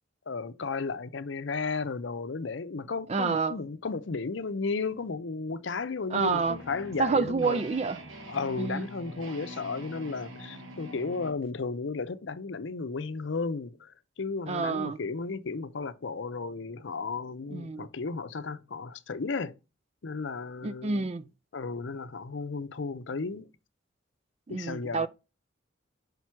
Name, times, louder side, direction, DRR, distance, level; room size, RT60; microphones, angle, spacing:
voice 1, 0.3-7.6 8.3-19.6 20.0-21.1 21.5-23.5 24.5-25.1, left 4 dB, 65° left, 0.6 m, -34 dB
voice 2, 3.1-3.6 6.1-6.6 7.0-8.0 8.6-8.9 14.5-15.0 17.5-17.9 20.6-21.2 24.5-25.1, right 4 dB, 35° right, 0.4 m, -28 dB
sound 1, 6.1-11.3, equal, 85° right, 1.2 m, -44 dB
5.9 x 5.3 x 4.6 m
head